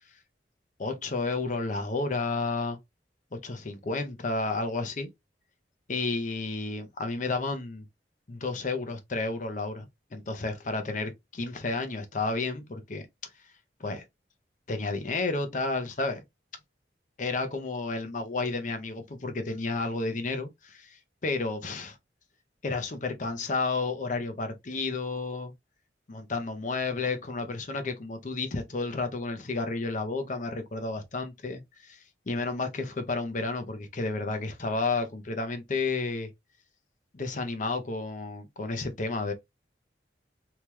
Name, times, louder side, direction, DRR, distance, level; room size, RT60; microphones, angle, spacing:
voice 1, 0.8-2.8 3.4-5.1 5.9-7.8 8.3-13.1 13.8-14.0 14.7-16.2 17.2-22.0 22.6-25.5 26.1-32.0 32.3-36.3 37.1-39.3, left 3 dB, 45° left, 0.7 m, -31 dB
2.9 x 2.3 x 3.1 m
head